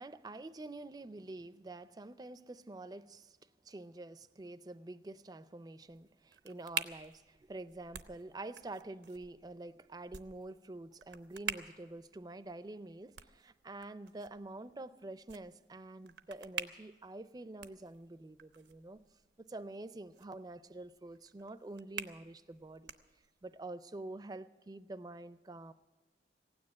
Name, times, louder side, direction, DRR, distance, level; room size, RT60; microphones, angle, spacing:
voice 1, 0.0-3.4 3.6-19.0 19.4-22.9 23.4-25.7, right 2 dB, 20° right, 0.4 m, -47 dB
sound 1, 5.8-23.6, right 8 dB, 85° right, 0.7 m, -48 dB
16.0 x 9.7 x 8.6 m
head